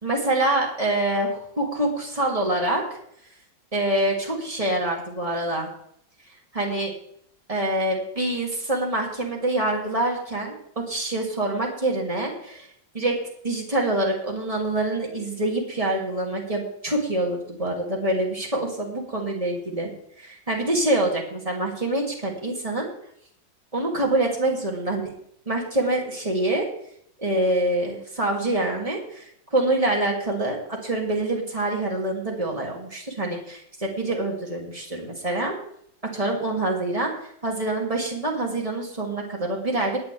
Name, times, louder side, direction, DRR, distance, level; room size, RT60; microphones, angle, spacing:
voice 1, 0.0-3.0 3.7-5.7 6.5-6.9 7.5-12.7 12.9-19.9 20.2-22.9 23.7-25.1 25.5-26.7 27.2-29.2 29.5-35.6 36.1-37.1 37.4-40.0, right 1 dB, 20° right, -1 dB, 2.8 m, -25 dB
18.5 x 9.9 x 3.5 m, 0.68 s
omnidirectional pair, 2.0 m